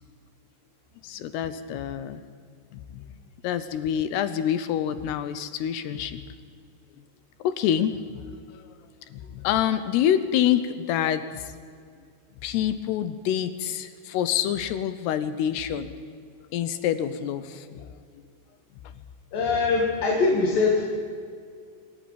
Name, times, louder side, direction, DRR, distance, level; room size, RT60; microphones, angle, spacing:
voice 1, 1.0-2.2 2.7-2.8 3.4-6.2 7.4-8.3 8.5-8.7 9.1-11.5 12.4-15.9 16.5-17.9, left 10 dB, 80° left, 13 dB, 2.4 m, -27 dB
voice 2, 19.3-20.8, left 4 dB, 55° left, 1 dB, 3.0 m, -22 dB
26.0 x 11.5 x 9.2 m, 2.2 s
omnidirectional pair, 5.5 m